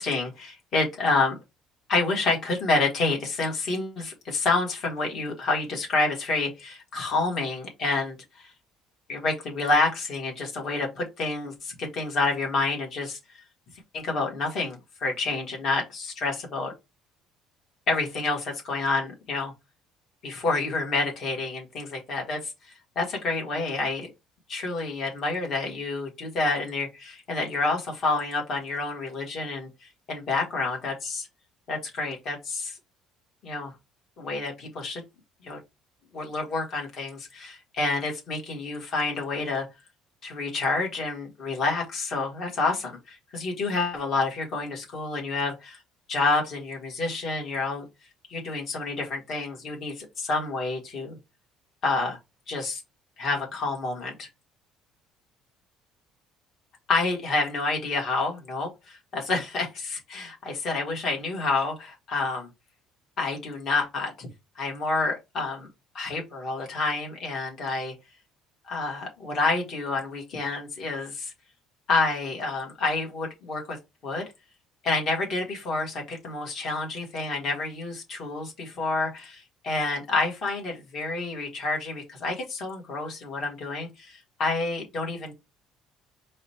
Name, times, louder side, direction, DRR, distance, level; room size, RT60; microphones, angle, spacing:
voice 1, 0.0-1.4 1.9-8.5 9.1-13.2 13.9-16.7 17.9-19.5 20.2-22.5 22.9-24.1 24.5-31.3 31.7-32.8 33.4-33.7 34.2-35.0 35.4-35.6 36.1-39.7 40.2-45.8 46.1-47.8 48.3-51.2 51.8-52.2 52.5-52.8 53.2-54.3 56.9-62.5 63.2-64.3 64.5-65.7 65.9-67.9 68.6-71.3 71.9-73.8 74.0-74.2 74.8-85.3, left 3 dB, 40° left, 1.3 m, -28 dB
4.8 x 2.1 x 4.2 m
cardioid pair, 165°, 0 cm